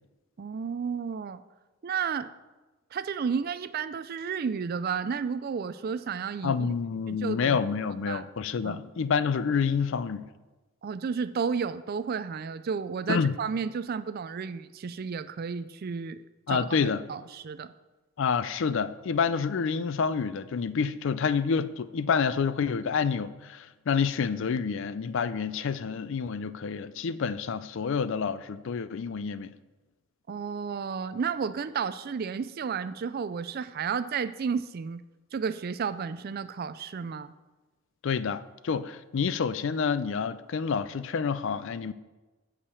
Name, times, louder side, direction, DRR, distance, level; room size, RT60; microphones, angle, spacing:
voice 1, 0.4-1.4 1.8-2.3 2.9-6.7 7.1-7.6 8.1-8.2 8.6-8.8 10.8-16.2 16.5-16.7 17.1-17.7 30.3-35.0 35.3-37.3, right 6 dB, 45° right, 0.3 m, -32 dB
voice 2, 6.4-10.3 13.1-13.4 16.5-17.0 18.2-29.5 38.0-41.9, left 6 dB, 60° left, 0.4 m, -28 dB
8.5 x 4.9 x 7.0 m
head